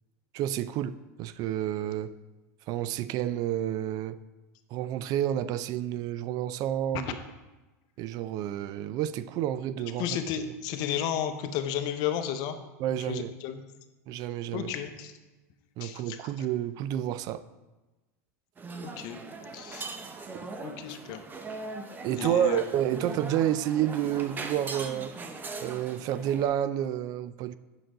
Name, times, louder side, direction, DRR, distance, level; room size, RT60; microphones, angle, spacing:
voice 1, 0.3-2.1 2.7-4.2 4.7-7.2 8.0-10.2 12.8-13.3 14.1-14.7 15.8-17.4 22.0-25.1 25.6-27.6, right 11 dB, 50° right, 14 dB, 0.4 m, -30 dB
voice 2, 10.0-12.6 13.1-13.6 14.5-15.1 15.8-16.5 18.8-19.2 19.5-19.9 20.6-21.2 22.2-22.6, left 9 dB, 55° left, 8 dB, 0.8 m, -33 dB
sound 1, 18.6-26.5, right 3 dB, 25° right, 0.8 m, -40 dB
7.9 x 6.3 x 3.8 m, 1.1 s
hypercardioid pair, 105°, 8 cm